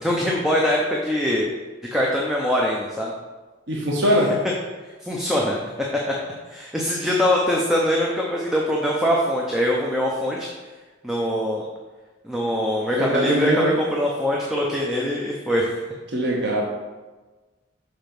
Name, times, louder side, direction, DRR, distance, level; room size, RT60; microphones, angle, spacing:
voice 1, 0.0-1.4 1.9-3.1 5.0-5.6 6.5-10.5 11.0-11.6 12.2-15.7, equal, ahead, -3 dB, 0.7 m, -23 dB
voice 2, 3.7-4.4 13.0-13.8 16.1-16.6, equal, 60° right, -2 dB, 0.9 m, -21 dB
5.8 x 5.2 x 5.9 m, 1.3 s
head